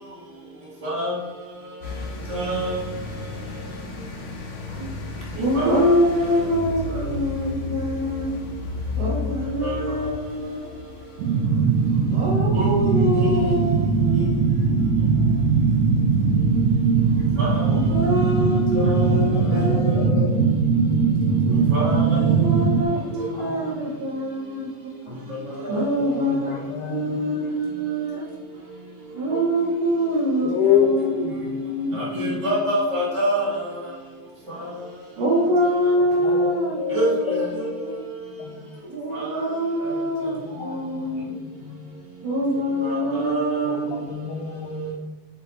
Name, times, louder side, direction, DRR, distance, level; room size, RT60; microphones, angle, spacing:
voice 1, 0.8-1.1 2.3-2.8 5.5-5.9 6.2-6.3 9.6-9.7 12.5-12.7 13.1-13.5 14.2-14.3 17.4-17.6 18.7-19.1 21.7-22.2 25.6-25.7 31.9-33.5 36.9-37.1 39.1-39.3 42.8-43.7, right 1 dB, 15° right, -6 dB, 1.1 m, -26 dB
sound 1, 1.8-19.8, left 4 dB, 65° left, 1.5 m, -35 dB
voice 2, 5.4-8.4 8.9-10.7 12.1-14.3 15.1-15.4 17.6-19.9 22.1-24.9 25.7-26.5 26.9-28.2 29.1-33.0 35.2-37.9 38.9-40.3 40.6-41.4 42.2-44.0, equal, 65° right, -5 dB, 1.8 m, -25 dB
sound 2, 11.2-22.8, right 5 dB, 85° right, 1.6 m, -20 dB
voice 3, 19.2-20.4 23.0-23.8 26.0-27.2 30.4-31.8 36.2-37.9 38.4-38.6 40.2-41.3 41.6-41.8 43.6-44.9, left 7 dB, 80° left, -2 dB, 2.1 m, -28 dB
8.0 x 5.7 x 2.6 m, 1.3 s
omnidirectional pair, 3.8 m